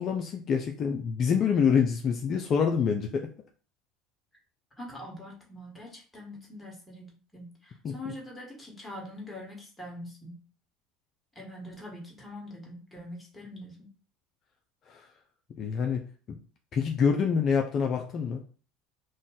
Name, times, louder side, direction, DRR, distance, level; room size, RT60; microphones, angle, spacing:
voice 1, 0.0-3.3 7.8-7.9 14.9-15.1 15.6-16.4 16.7-18.4, left 6 dB, 45° left, 3 dB, 0.4 m, -26 dB
voice 2, 4.8-10.4 11.3-13.9, left 1 dB, 10° left, -2 dB, 1.5 m, -43 dB
2.5 x 2.2 x 3.9 m, 0.39 s
hypercardioid pair, 75°, 0 cm